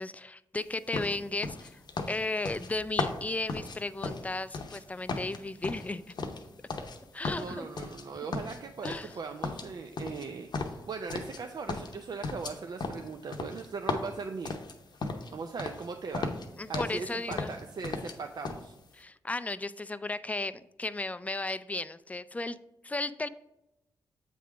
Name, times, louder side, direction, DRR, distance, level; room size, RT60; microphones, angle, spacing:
voice 1, 0.0-1.8 2.1-6.0 7.1-7.7 8.8-9.1 16.6-17.5 18.9-22.6 22.8-23.3, left 2 dB, 15° left, 14 dB, 0.3 m, -35 dB
sound 1, 0.9-4.8 5.1-7.0 7.2-8.0 8.3-9.2 9.4-11.4 11.7-15.3 15.6-15.9 16.1-17.0 17.3-18.2 18.4-18.6, left 3 dB, 60° left, 0.8 m, -36 dB
voice 2, 7.3-14.6 15.3-16.3 16.7-18.7, right 4 dB, 55° right, 5 dB, 0.5 m, -39 dB
7.5 x 3.6 x 4.8 m, 0.91 s
supercardioid pair, 50°, 8 cm